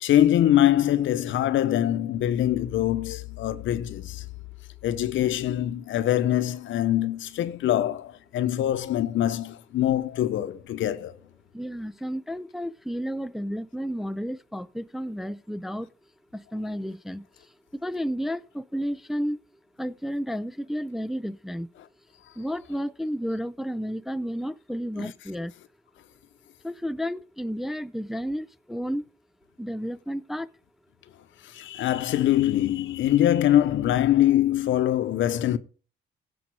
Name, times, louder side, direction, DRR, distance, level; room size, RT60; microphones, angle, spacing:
voice 1, 0.0-4.2 4.8-11.1 25.0-25.1 31.4-35.6, left 12 dB, 75° left, 0.8 m, -23 dB
voice 2, 11.5-15.9 16.3-17.2 17.8-19.4 19.8-21.7 22.4-25.5 26.6-29.0 29.6-30.5, equal, ahead, 0.4 m, -32 dB
16.0 x 5.4 x 4.7 m
cardioid pair, 90°, 20 cm